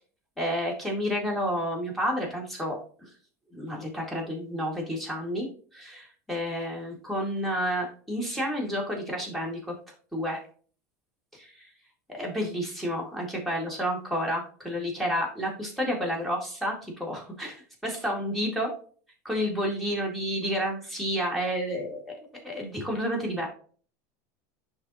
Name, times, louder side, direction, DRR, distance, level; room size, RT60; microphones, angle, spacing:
voice 1, 0.4-3.1 3.5-5.5 5.7-9.6 10.1-10.4 11.3-11.7 12.1-18.7 19.2-23.5, equal, ahead, -2 dB, 1.9 m, -30 dB
10.5 x 3.6 x 2.8 m, 0.42 s
supercardioid pair, 165°, 9 cm